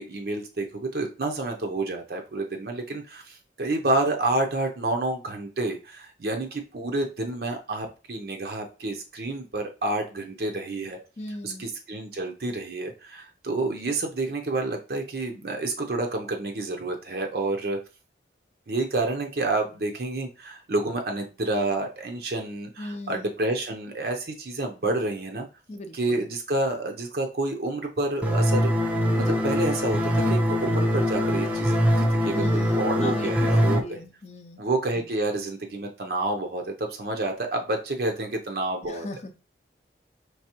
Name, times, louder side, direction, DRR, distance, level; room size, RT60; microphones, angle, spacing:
voice 1, 0.0-11.0 11.4-17.8 18.7-25.5 25.9-32.4 32.8-34.0 34.6-39.1, right 2 dB, 55° right, 3 dB, 0.6 m, -29 dB
voice 2, 11.2-11.7 22.8-23.3 25.7-26.3 32.3-34.6 35.0-35.1 38.8-39.3, left 1 dB, 40° left, 7 dB, 0.5 m, -37 dB
sound 1, 28.2-33.8, equal, 10° right, 0.5 m, -23 dB
4.7 x 3.2 x 2.9 m, 0.32 s
head